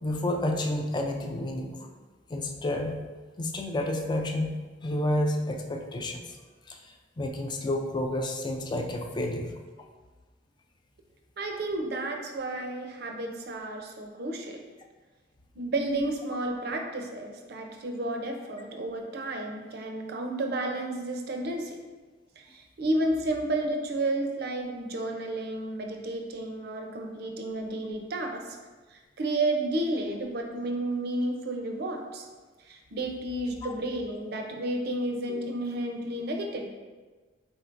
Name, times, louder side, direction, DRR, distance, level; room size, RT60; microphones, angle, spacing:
voice 1, 0.0-1.9 2.3-3.0 3.4-6.4 6.7-6.8 7.2-9.5 33.6-33.7, left 1 dB, 25° left, 3 dB, 0.4 m, -30 dB
voice 2, 11.4-14.6 15.6-21.8 22.4-28.5 28.9-32.2 32.6-36.7, right 1 dB, 60° right, 3 dB, 0.5 m, -31 dB
4.5 x 4.0 x 2.5 m, 1.3 s
head